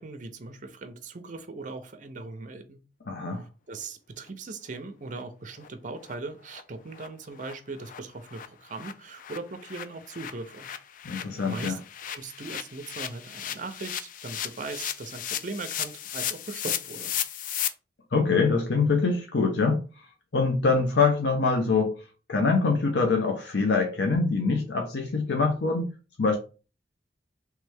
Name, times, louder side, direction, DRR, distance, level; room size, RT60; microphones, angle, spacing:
voice 1, 0.0-2.8 3.7-10.7 11.4-11.8 12.1-17.1, right 3 dB, 45° right, 0.6 m, -39 dB
voice 2, 3.1-3.4 11.0-11.8 18.1-19.8 20.3-22.0 22.3-25.9 26.2-26.4, left 4 dB, 75° left, 0.7 m, -24 dB
sound 1, 4.7-4.8 5.1-5.2 5.6-5.7 6.0-6.2 6.5-6.6 6.9-7.1 7.4-7.5 7.8-17.7, left 10 dB, 50° left, 0.4 m, -35 dB
3.2 x 3.2 x 3.5 m
head